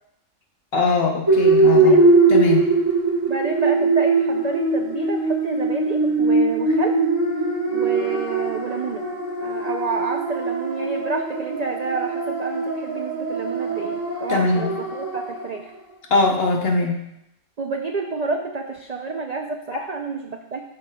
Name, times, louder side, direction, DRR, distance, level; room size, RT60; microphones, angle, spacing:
voice 1, 0.7-2.0 2.3-2.7 14.3-14.7 16.1-16.9 19.7-19.8, left 3 dB, 55° left, 1 dB, 1.0 m, -21 dB
sound 1, 1.3-15.5, right 3 dB, 20° right, 1.1 m, -21 dB
voice 2, 1.7-2.1 3.3-6.9 7.7-9.0 9.4-15.7 17.6-20.6, right 4 dB, 85° right, 3 dB, 0.3 m, -29 dB
12.0 x 4.8 x 2.2 m, 0.83 s
omnidirectional pair, 1.3 m